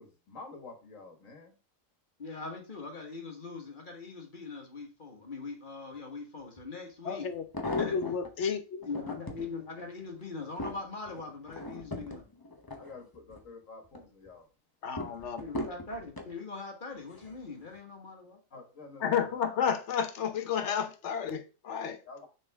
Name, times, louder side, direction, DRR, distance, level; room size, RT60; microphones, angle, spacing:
voice 1, 0.0-1.6 12.8-14.5 15.2-15.3 18.5-19.5 22.1-22.3, left 3 dB, 80° left, 2.0 m, -49 dB
voice 2, 2.2-7.3 7.7-8.0 8.8-12.3 15.4-18.4, left 4 dB, 40° left, 1.7 m, -41 dB
sound 1, 6.6-6.7 7.3-8.3 8.8-9.5 10.0-13.5 13.8-14.3 15.0-16.3 17.1-17.5 17.8-17.9, left 2 dB, 20° left, 0.7 m, -39 dB
voice 3, 7.0-7.4 7.7-8.9 14.8-15.5 19.0-22.0, left 7 dB, 65° left, 1.1 m, -31 dB
6.3 x 4.2 x 3.5 m
omnidirectional pair, 1.3 m